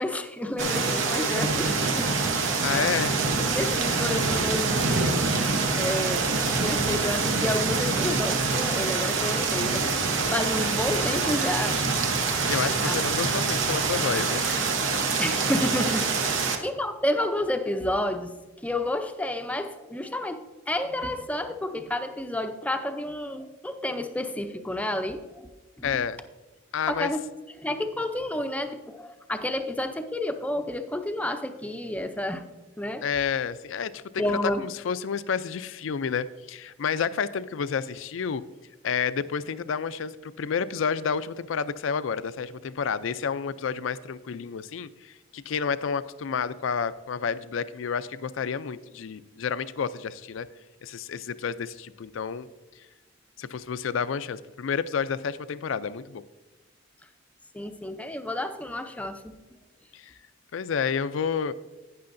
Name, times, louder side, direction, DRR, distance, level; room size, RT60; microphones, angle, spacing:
voice 1, 0.0-2.1 3.5-4.9 5.3-6.3 6.6-9.9 10.3-11.8 12.8-13.0 15.2-18.4 18.6-25.4 25.8-25.9 26.9-27.2 27.6-32.4 32.8-33.1 34.2-34.7 57.5-59.4, left 1 dB, 5° left, 8 dB, 0.5 m, -30 dB
sound 1, 0.6-16.6, right 4 dB, 70° right, 1.0 m, -25 dB
voice 2, 2.6-3.1 12.5-14.6 16.4-16.5 25.8-26.2 26.7-27.1 33.0-38.4 38.8-50.5 50.8-52.5 53.4-56.2 59.9-60.1 60.5-61.5, left 6 dB, 70° left, 15 dB, 0.4 m, -30 dB
11.0 x 9.5 x 2.6 m, 1.2 s
head